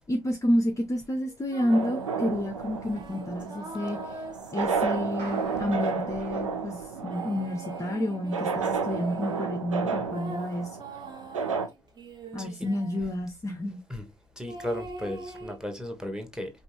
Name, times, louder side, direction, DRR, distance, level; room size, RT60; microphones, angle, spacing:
voice 1, 0.1-4.2 4.5-10.8 12.3-13.8, left 1 dB, 20° left, 0.7 m, -30 dB
sound 1, 1.5-2.1 2.8-6.1 6.9-9.5 10.1-13.2 14.5-15.6, right 2 dB, 25° right, 1.3 m, -43 dB
sound 2, 1.7-11.7, right 5 dB, 80° right, 0.5 m, -32 dB
sound 3, 5.2-7.7, right 3 dB, 65° right, 1.3 m, -44 dB
voice 2, 14.4-16.5, left 1 dB, 5° right, 1.3 m, -35 dB
5.1 x 2.6 x 3.2 m
figure-of-eight pair, 50°, 17 cm